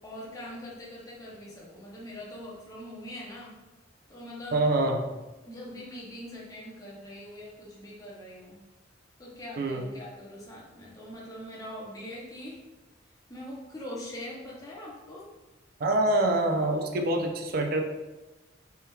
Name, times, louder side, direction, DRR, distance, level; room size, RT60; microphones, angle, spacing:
voice 1, 0.0-3.5 4.1-4.6 5.5-8.6 9.2-12.6 13.3-15.3, left 1 dB, 20° left, -5 dB, 0.7 m, -42 dB
voice 2, 4.5-5.1 9.6-9.9 15.8-17.8, right 2 dB, 50° right, 4 dB, 0.3 m, -25 dB
3.5 x 2.8 x 2.3 m, 1.1 s
head